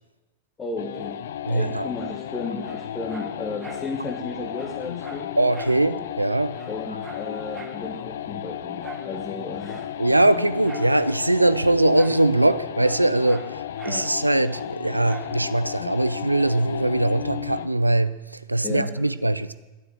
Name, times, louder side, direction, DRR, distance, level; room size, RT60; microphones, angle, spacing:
voice 1, 0.6-1.2 1.5-5.3 6.7-9.9 13.8-14.1 18.6-18.9, left 3 dB, 20° left, 1.4 m, -34 dB
sound 1, 0.8-17.8, left 10 dB, 60° left, 0.5 m, -34 dB
voice 2, 1.5-1.9 5.4-6.6 10.0-19.5, right 1 dB, 85° right, 0.4 m, -21 dB
Dog, 2.6-3.9 4.2-4.3 4.5-5.8 6.2-6.3 6.5-7.8 8.8-9.1 9.6-10.9 11.9-12.3 12.5-14.1 15.0-15.4 15.9-16.0, right 5 dB, 15° right, 1.5 m, -43 dB
11.0 x 9.2 x 8.0 m
figure-of-eight pair, 90°, 0 cm